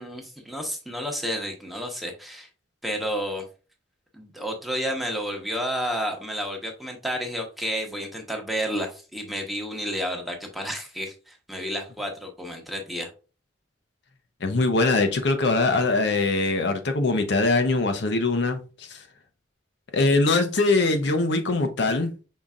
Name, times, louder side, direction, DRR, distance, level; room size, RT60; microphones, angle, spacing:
voice 1, 0.0-2.5 2.8-3.5 4.1-13.1, equal, ahead, 0.9 m, -31 dB
voice 2, 14.4-19.0 19.9-22.1, left 3 dB, 65° left, 0.7 m, -22 dB
5.5 x 3.8 x 2.4 m
head